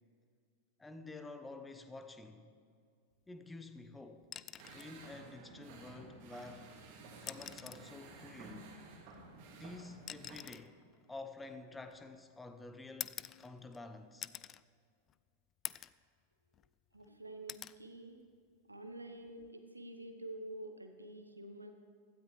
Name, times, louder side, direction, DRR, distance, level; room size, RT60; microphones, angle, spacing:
voice 1, 0.8-2.5 3.3-4.3 4.7-6.7 7.2-8.7 9.6-10.8 11.1-14.3, left 3 dB, 10° left, 0.8 m, -50 dB
sound 1, 4.2-4.9 6.4-6.5 7.1-7.9 9.1-12.2 13.0-13.8 14.2-14.6 15.1-15.2 15.6-16.0 16.5-17.1 17.5-17.8 19.3-19.5, left 10 dB, 30° left, 0.3 m, -47 dB
sound 2, 4.6-10.4, right 3 dB, 45° right, 2.2 m, -53 dB
voice 2, 16.9-18.2 18.7-21.7, right 1 dB, 80° right, 1.0 m, -48 dB
16.5 x 13.0 x 3.4 m
figure-of-eight pair, 90°, 0 cm